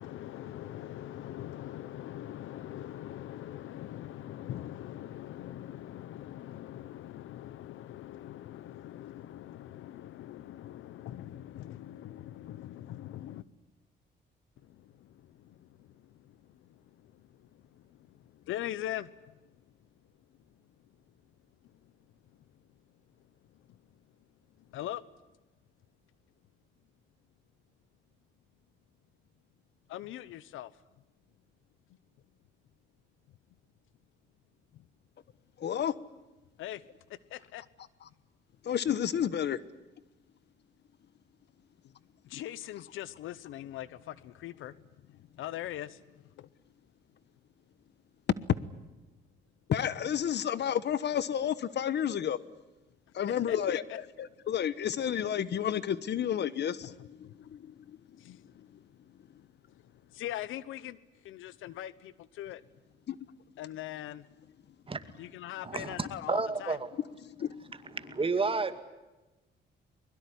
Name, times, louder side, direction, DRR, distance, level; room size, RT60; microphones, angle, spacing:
voice 1, 0.0-13.4 14.6-19.8 20.3-21.1 21.6-22.1 22.5-22.7 23.2-24.0 24.6-25.0 29.9-30.7 34.7-34.9 36.6-36.8 37.1-37.6 41.8-41.9 42.2-46.5 53.5-54.0 56.8-56.9 57.2-57.7 58.0-62.7 63.6-64.3 65.2-66.8, left 13 dB, 85° left, 1.0 m, -43 dB
voice 2, 35.6-35.9 38.6-39.6 49.7-52.4 53.1-53.8 54.2-58.2 63.1-63.2 67.2-68.0, left 9 dB, 60° left, 1.2 m, -31 dB
voice 3, 65.6-66.8 68.0-68.8, right 4 dB, 25° right, 2.3 m, -31 dB
23.0 x 22.0 x 9.8 m
cardioid pair, 90°, 20 cm